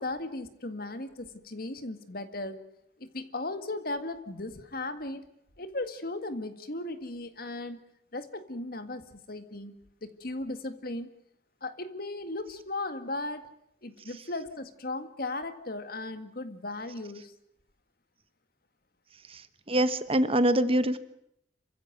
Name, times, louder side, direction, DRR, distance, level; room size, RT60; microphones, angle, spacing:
voice 1, 0.0-2.6 3.0-5.2 5.6-7.8 8.1-9.7 10.0-11.1 11.6-13.5 13.8-17.3, left 2 dB, 55° left, 10 dB, 1.9 m, -36 dB
voice 2, 19.3-21.0, right 1 dB, 30° right, 12 dB, 1.2 m, -25 dB
27.0 x 15.5 x 9.4 m, 0.75 s
head